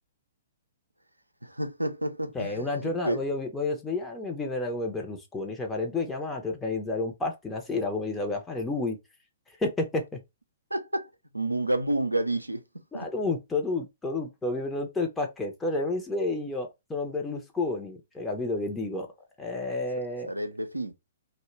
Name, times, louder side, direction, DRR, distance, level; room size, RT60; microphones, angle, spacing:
voice 1, 1.4-3.2 10.7-11.1 11.3-12.6 12.9-13.1 20.3-20.9, right 1 dB, 85° right, 0.4 m, -30 dB
voice 2, 2.3-9.0 9.6-10.2 12.9-19.1 19.4-20.3, left 2 dB, 10° left, 0.5 m, -30 dB
2.2 x 2.1 x 3.1 m
figure-of-eight pair, 115°, 0 cm